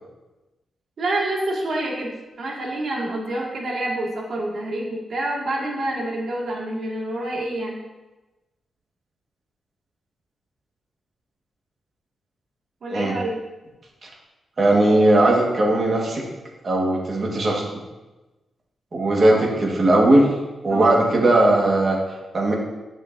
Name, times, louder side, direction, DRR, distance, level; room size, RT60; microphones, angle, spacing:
voice 1, 1.0-2.1 2.4-7.8 12.8-13.4 19.2-19.5 20.7-20.9, right 1 dB, 60° right, -3 dB, 2.0 m, -27 dB
voice 2, 14.6-16.2 16.6-17.6 18.9-20.3 20.6-22.5, right 1 dB, 40° right, -2 dB, 1.6 m, -18 dB
11.5 x 5.7 x 2.7 m, 1.1 s
wide cardioid pair, 125°, 0 cm